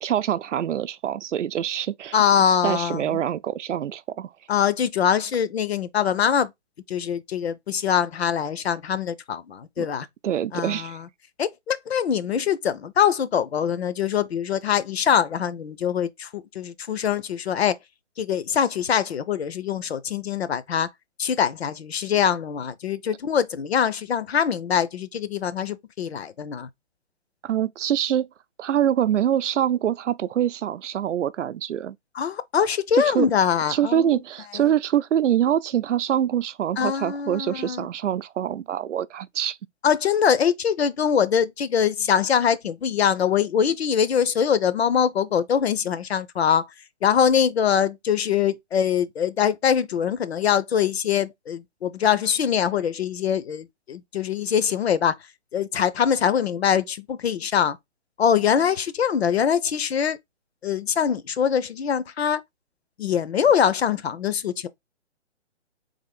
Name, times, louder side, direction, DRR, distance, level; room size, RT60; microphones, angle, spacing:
voice 1, 0.0-2.2 2.6-4.3 9.8-9.9 10.2-11.0 27.4-28.3 28.6-32.0 33.0-33.3 33.7-39.6, right 10 dB, 90° right, 0.5 m, -25 dB
voice 2, 2.1-3.2 4.5-6.5 6.9-10.1 10.5-11.1 11.4-17.7 18.2-20.9 21.2-26.7 32.1-34.2 34.5-34.7 36.8-37.9 39.8-46.6 47.0-55.1 55.5-57.8 58.2-60.2 60.6-62.4 63.0-64.7, left 8 dB, 65° left, 0.6 m, -23 dB
3.5 x 3.3 x 3.6 m
hypercardioid pair, 170°, 35 cm